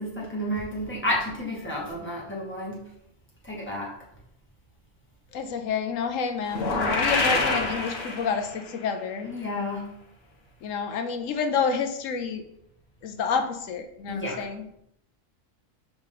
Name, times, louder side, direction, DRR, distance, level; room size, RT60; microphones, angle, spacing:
voice 1, 0.0-2.9 3.4-3.9 9.2-9.9 14.1-14.4, left 1 dB, 10° left, -5 dB, 1.9 m, -31 dB
voice 2, 5.3-9.3 10.6-12.4 13.0-14.8, left 5 dB, 90° left, 6 dB, 1.0 m, -29 dB
sound 1, 6.5-8.7, left 3 dB, 55° left, 1.2 m, -26 dB
4.8 x 3.8 x 5.7 m, 0.76 s
omnidirectional pair, 1.3 m